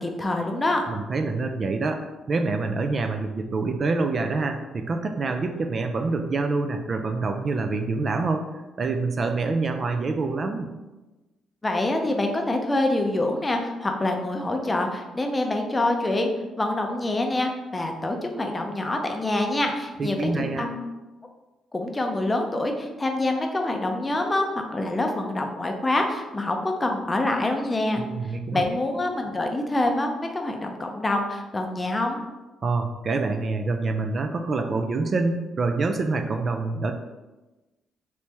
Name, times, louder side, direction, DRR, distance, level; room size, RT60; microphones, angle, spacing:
voice 1, 0.0-0.8 11.6-16.3 16.6-20.8 21.7-28.0 28.5-32.2, left 2 dB, 20° left, 3 dB, 0.5 m, -26 dB
voice 2, 0.9-8.5 8.8-10.7 20.0-20.6 27.9-28.6 32.6-36.9, right 3 dB, 45° right, 5 dB, 0.3 m, -26 dB
3.0 x 2.8 x 3.4 m, 1.1 s
cardioid pair, 90°, 0 cm